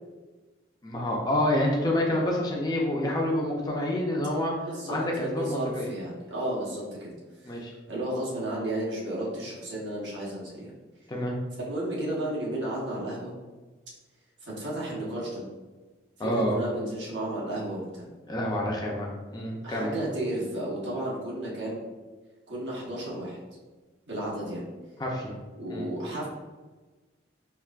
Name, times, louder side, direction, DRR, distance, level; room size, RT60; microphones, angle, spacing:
voice 1, 0.8-4.5 4.9-5.9 7.4-7.7 11.1-11.3 16.2-16.6 18.3-19.9 25.0-25.3 25.7-25.9, left 1 dB, 20° left, -1 dB, 0.5 m, -28 dB
voice 2, 4.6-7.1 7.9-10.7 11.6-13.3 14.4-15.4 16.2-18.1 19.6-21.8 22.5-23.4 24.1-24.7 25.6-26.3, right 1 dB, 90° right, -6 dB, 1.3 m, -33 dB
4.4 x 2.6 x 2.4 m, 1.3 s
head